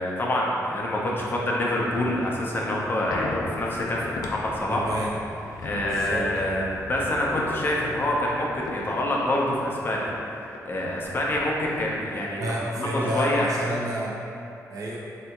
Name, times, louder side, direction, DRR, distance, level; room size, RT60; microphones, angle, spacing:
voice 1, 0.0-4.9 5.6-6.6 6.9-10.1 10.4-13.5, left 1 dB, 35° left, -3 dB, 0.6 m, -26 dB
sound 1, 1.5-10.2 10.5-10.6 10.9-12.3 12.8-12.9, left 3 dB, 90° left, 0.4 m, -39 dB
voice 2, 4.7-5.1 5.8-6.7 12.4-14.2 14.7-15.0, right 1 dB, 65° right, -4 dB, 0.7 m, -30 dB
3.3 x 2.9 x 4.4 m, 2.8 s
wide cardioid pair, 125°, 6 cm